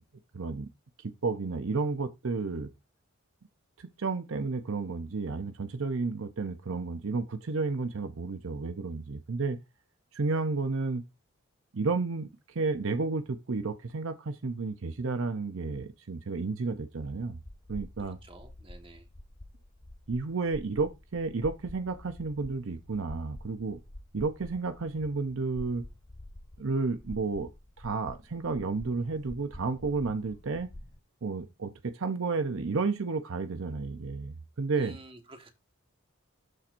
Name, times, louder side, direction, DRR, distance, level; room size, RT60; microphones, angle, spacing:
voice 1, 0.3-0.7 1.0-2.7 3.8-9.6 10.1-11.0 11.7-17.4 17.7-18.2 20.1-23.8 24.1-25.8 26.6-27.5 27.8-30.7 31.2-35.0, right 4 dB, 70° right, 0.7 m, -32 dB
sound 1, 17.0-31.0, left 1 dB, 20° left, 0.5 m, -48 dB
voice 2, 18.0-19.1 34.7-35.5, right 2 dB, 25° right, 1.4 m, -50 dB
13.0 x 4.3 x 2.6 m
head